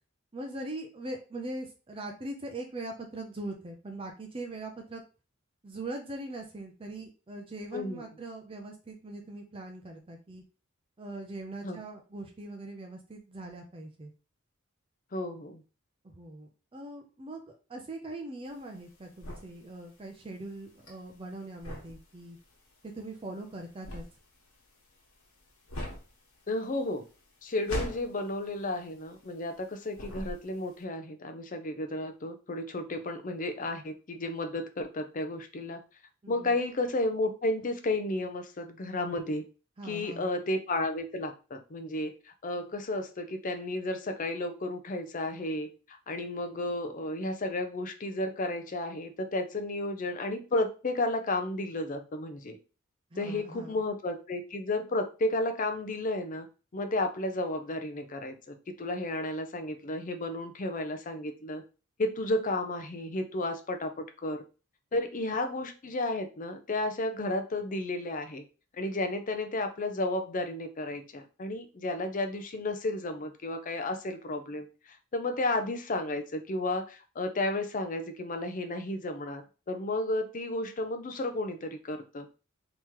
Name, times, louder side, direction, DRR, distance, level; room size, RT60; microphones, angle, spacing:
voice 1, 0.3-5.0 5.6-10.4 11.0-14.1 16.0-17.4 17.7-22.4 22.8-24.0 36.2-36.6 39.8-40.3 53.1-53.8, right 2 dB, 25° right, 2 dB, 0.5 m, -41 dB
voice 2, 7.7-8.0 11.6-11.8 15.1-15.6 26.5-27.0 27.4-35.8 36.3-39.4 39.8-52.6 53.2-56.5 56.7-61.6 62.0-64.4 64.9-68.4 68.7-82.3, left 2 dB, 40° left, 7 dB, 0.5 m, -33 dB
sound 1, 18.5-29.6 29.9-30.8, left 1 dB, 85° left, 1.4 m, -41 dB
3.6 x 2.9 x 3.0 m, 0.34 s
head